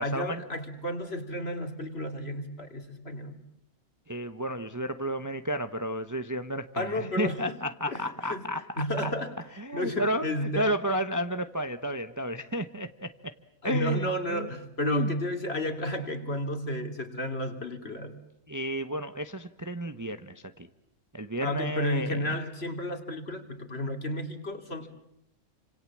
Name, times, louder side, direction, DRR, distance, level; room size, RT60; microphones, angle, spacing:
voice 1, 0.0-3.4 6.7-7.6 7.9-8.5 8.8-9.4 9.7-10.7 13.6-18.2 21.4-24.9, left 1 dB, 50° left, 6 dB, 3.3 m, -32 dB
voice 2, 4.1-9.1 9.6-13.3 13.6-14.5 14.8-15.1 18.5-20.7 21.1-22.3, equal, 15° right, 9 dB, 0.9 m, -32 dB
29.0 x 26.5 x 7.5 m, 0.78 s
omnidirectional pair, 1.4 m